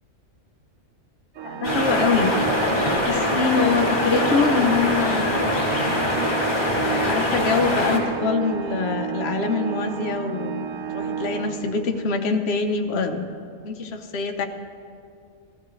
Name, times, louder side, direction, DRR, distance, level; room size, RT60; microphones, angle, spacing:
Organ, 1.3-12.2, right 7 dB, 75° right, 1.1 m, -31 dB
voice 1, 1.4-2.3 3.1-5.5 6.8-10.7 10.9-13.3 13.6-14.5, left 4 dB, 55° left, 5 dB, 1.1 m, -24 dB
sound 1, 1.6-8.0, left 1 dB, 40° left, 2.0 m, -23 dB
15.5 x 14.0 x 3.2 m, 2.3 s
omnidirectional pair, 1.4 m